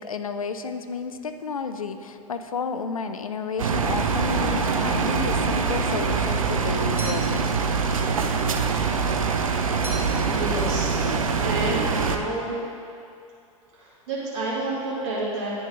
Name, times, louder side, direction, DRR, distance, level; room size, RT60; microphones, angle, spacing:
voice 1, 0.0-7.5, left 5 dB, 85° left, 9 dB, 0.5 m, -31 dB
sound 1, 3.6-12.2, right 5 dB, 80° right, 0.6 m, -24 dB
sound 2, 7.0-7.6 9.8-10.3 10.6-11.3, right 1 dB, 10° right, 1.5 m, -39 dB
voice 2, 10.2-12.6 13.8-15.5, right 2 dB, 55° right, -7 dB, 2.1 m, -30 dB
9.9 x 6.9 x 3.7 m, 2.5 s
figure-of-eight pair, 85°, 17 cm